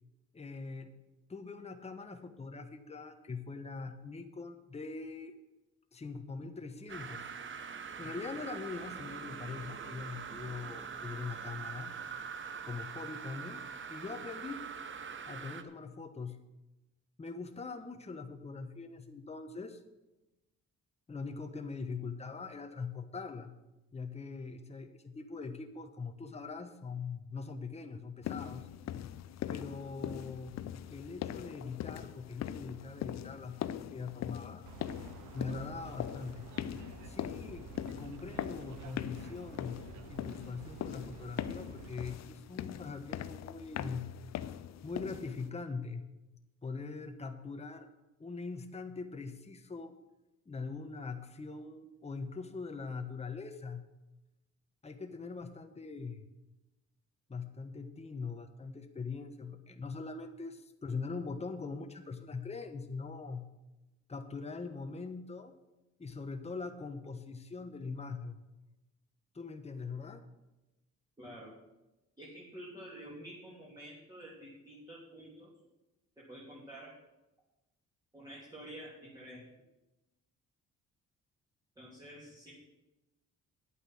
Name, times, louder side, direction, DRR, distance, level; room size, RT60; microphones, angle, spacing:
voice 1, 0.3-0.9 1.3-5.3 5.9-7.2 8.0-12.1 12.7-13.6 13.9-14.6 15.3-16.4 17.2-19.8 21.1-23.5 23.9-28.7 29.5-30.5 30.9-34.6 35.3-36.5 37.0-39.8 40.1-44.1 44.8-46.0 46.6-47.9 48.2-49.9 50.5-53.8 54.8-56.3 57.3-63.5 64.1-65.5 66.0-68.4 69.3-70.2, left 4 dB, 20° left, 6 dB, 1.1 m, -42 dB
sound 1, 6.9-15.6, right 6 dB, 40° right, 1.0 m, -43 dB
sound 2, 28.2-45.5, left 11 dB, 60° left, 0.6 m, -41 dB
sound 3, 34.7-42.2, right 10 dB, 80° right, 0.8 m, -51 dB
voice 2, 71.2-71.5 72.2-75.5 76.2-76.9 78.1-79.4 81.7-82.5, equal, 15° right, -6 dB, 3.3 m, -49 dB
9.8 x 8.8 x 6.4 m, 1.0 s
cardioid pair, 90°, 30 cm